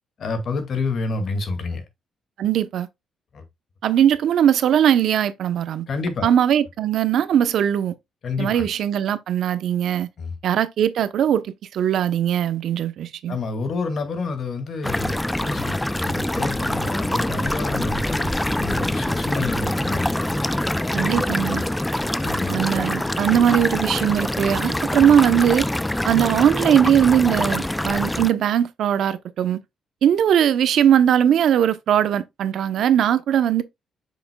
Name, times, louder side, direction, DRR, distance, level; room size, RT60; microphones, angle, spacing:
voice 1, 0.2-1.9 3.3-3.4 5.9-6.3 8.2-8.7 10.2-10.4 13.3-20.2 21.4-21.6 22.2-22.5, left 3 dB, 55° left, 2.0 m, -29 dB
voice 2, 2.4-2.9 3.8-5.9 6.2-7.9 8.4-10.1 10.4-11.5 11.7-13.4 20.9-21.6 22.5-25.7 26.0-29.6 30.0-33.6, right 9 dB, 70° right, 0.7 m, -20 dB
sound 1, 14.8-28.3, left 1 dB, 10° left, 0.4 m, -24 dB
7.2 x 6.0 x 2.2 m
cardioid pair, 90°, 0 cm